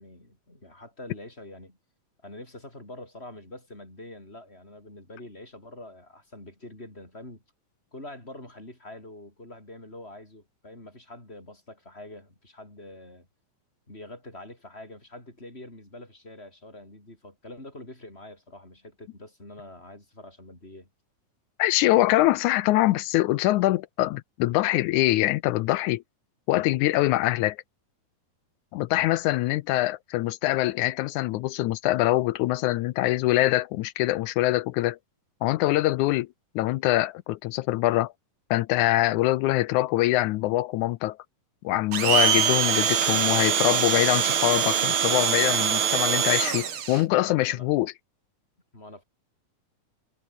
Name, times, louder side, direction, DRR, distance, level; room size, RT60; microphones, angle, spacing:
voice 1, 0.0-1.8 2.2-7.4 7.9-13.3 13.9-20.9 47.1-47.7 48.7-49.0, left 1 dB, 15° left, 7.4 m, -45 dB
voice 2, 21.6-26.0 26.5-27.6 28.7-35.0 35.4-36.3 36.6-38.1 38.5-41.2 41.6-47.9, left 17 dB, 80° left, 1.8 m, -24 dB
Domestic sounds home sounds, 41.9-47.0, right 8 dB, 45° right, 2.1 m, -23 dB
omnidirectional pair, 3.9 m